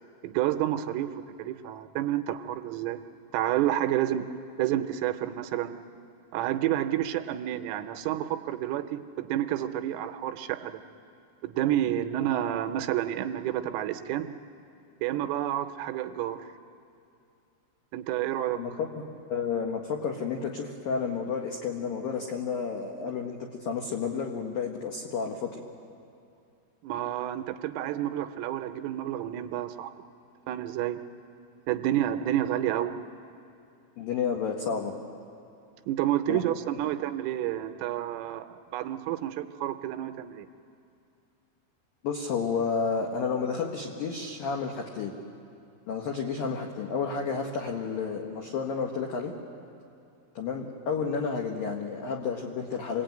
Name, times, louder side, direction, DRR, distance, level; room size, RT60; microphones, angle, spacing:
voice 1, 0.2-3.0 3.3-4.2 4.6-5.8 6.3-10.8 11.4-14.3 15.0-16.5 17.9-18.6 26.8-29.9 30.5-31.0 31.7-33.0 35.9-40.5, right 12 dB, 80° right, 8 dB, 3.2 m, -29 dB
voice 2, 18.5-18.9 19.3-25.6 34.0-34.9 36.3-36.4 42.0-45.1 45.9-49.3 50.4-53.0, left 5 dB, 80° left, 2 dB, 2.0 m, -31 dB
27.5 x 20.0 x 9.1 m, 2.5 s
omnidirectional pair, 6.0 m